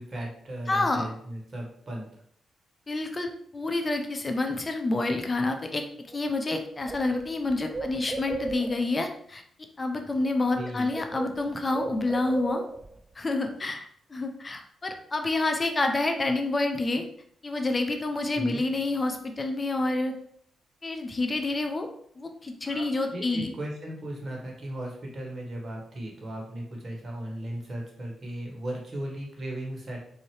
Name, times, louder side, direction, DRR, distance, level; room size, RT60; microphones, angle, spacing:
voice 1, 0.0-2.1 10.6-10.9 18.4-18.6 22.6-30.0, right 1 dB, 50° right, -1 dB, 1.5 m, -36 dB
voice 2, 0.7-1.1 2.9-5.8 6.1-9.4 9.8-12.6 13.2-17.0 17.4-20.1 20.8-21.9 22.2-23.5, left 2 dB, 35° left, 5 dB, 0.6 m, -28 dB
Bird, 6.1-6.2 6.5-9.0 10.1-10.3 10.6-13.0, right 3 dB, 35° right, 0.4 m, -36 dB
4.0 x 2.8 x 3.2 m, 0.64 s
hypercardioid pair, 45°, 0 cm